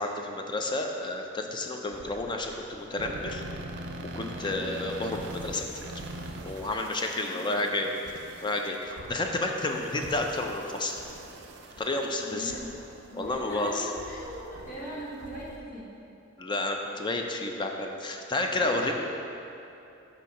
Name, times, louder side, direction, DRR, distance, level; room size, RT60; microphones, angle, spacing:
voice 1, 0.0-3.4 4.1-5.9 6.4-7.9 8.4-11.0 11.8-12.5 13.2-13.9 16.4-18.9, left 2 dB, 25° left, 2 dB, 0.4 m, -30 dB
sound 1, 1.9-15.6, right 1 dB, 60° right, 0.5 m, -43 dB
voice 2, 4.4-4.7 7.1-7.8 12.3-12.7 13.1-15.9 18.5-18.9, equal, 45° left, -6 dB, 1.5 m, -41 dB
8.2 x 2.8 x 5.3 m, 2.8 s
head